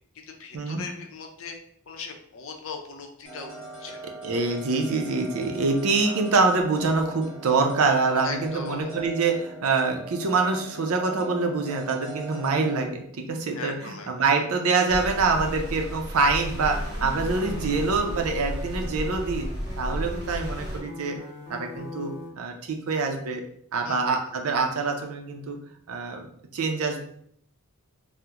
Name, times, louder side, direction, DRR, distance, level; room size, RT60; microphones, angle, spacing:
voice 1, 0.2-1.6 1.9-3.5 3.8-4.1 6.0-6.2 8.2-9.0 13.5-14.7 23.8-24.4, left 4 dB, 65° left, 3 dB, 0.5 m, -39 dB
sound 1, 3.2-12.9, right 2 dB, 35° right, 1.5 m, -41 dB
voice 2, 4.2-19.5 19.8-21.2 21.5-23.4 23.7-25.6 25.9-26.3 26.5-27.0, right 4 dB, 75° right, 3 dB, 0.5 m, -25 dB
sound 2, 14.9-20.8, equal, 50° right, 1.1 m, -33 dB
sound 3, 16.6-22.3, left 1 dB, 40° left, 0.8 m, -42 dB
3.5 x 2.1 x 2.8 m, 0.66 s
head